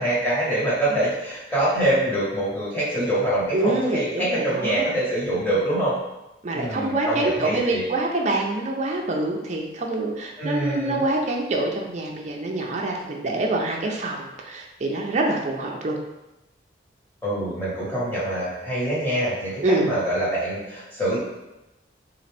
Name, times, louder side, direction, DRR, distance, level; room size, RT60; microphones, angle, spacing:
voice 1, 0.0-6.0 6.5-7.8 10.4-11.0 17.2-21.2, right 1 dB, 10° left, -9 dB, 1.3 m, -25 dB
voice 2, 3.5-4.9 5.5-5.7 6.4-16.0 19.6-19.9, right 2 dB, 40° right, 0 dB, 0.5 m, -25 dB
3.8 x 2.5 x 3.3 m, 0.98 s
head